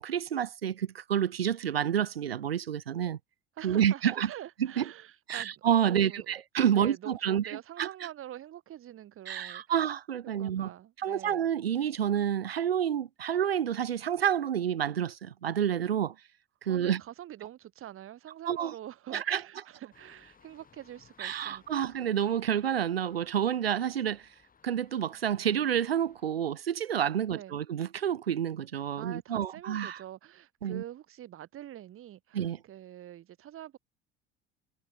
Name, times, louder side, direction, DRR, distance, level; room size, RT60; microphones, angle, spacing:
voice 1, 0.0-3.2 3.6-4.3 4.8-4.9 5.3-7.9 9.3-10.7 11.0-16.1 16.6-17.0 18.5-18.7 19.1-19.4 21.2-24.2 24.6-30.0 30.6-30.8 32.3-32.6, right 9 dB, 85° right, 0.6 m, -29 dB
voice 2, 3.6-5.5 5.9-6.4 6.7-9.8 10.4-11.5 16.7-21.9 27.3-27.6 29.0-33.8, right 12 dB, 45° right, 6.2 m, -45 dB
sound 1, 19.9-26.3, left 6 dB, 30° left, 6.7 m, -63 dB
figure-of-eight pair, 60°, 29 cm